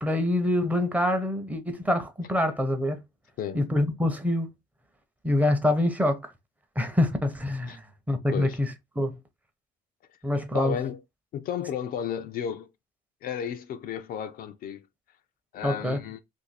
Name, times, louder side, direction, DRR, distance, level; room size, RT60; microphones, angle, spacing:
voice 1, 0.0-3.0 3.5-4.5 5.2-6.3 6.8-8.7 9.0-9.1 10.2-10.8 15.6-16.0, left 1 dB, 10° right, 0.7 m, -25 dB
voice 2, 10.5-11.0 11.3-12.7 13.2-14.9 15.5-16.2, left 8 dB, 60° left, 0.4 m, -33 dB
2.6 x 2.6 x 4.0 m
cardioid pair, 110°, 17 cm